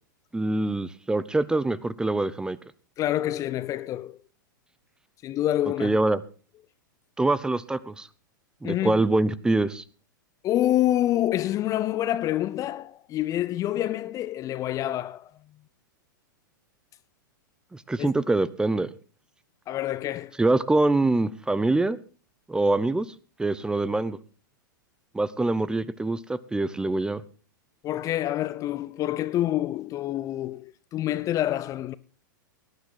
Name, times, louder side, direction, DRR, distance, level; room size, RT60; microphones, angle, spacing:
voice 1, 0.3-2.6 5.8-6.2 7.2-8.1 8.6-9.8 17.7-18.9 20.4-22.0 22.5-23.1 23.4-24.2 25.1-27.2, right 2 dB, 5° right, 0.7 m, -24 dB
voice 2, 3.0-4.2 5.2-6.0 8.6-9.0 10.4-15.3 18.0-18.1 19.7-20.4 27.8-31.9, left 13 dB, 30° left, 0.6 m, -27 dB
18.5 x 10.5 x 4.0 m
hypercardioid pair, 105°, 11 cm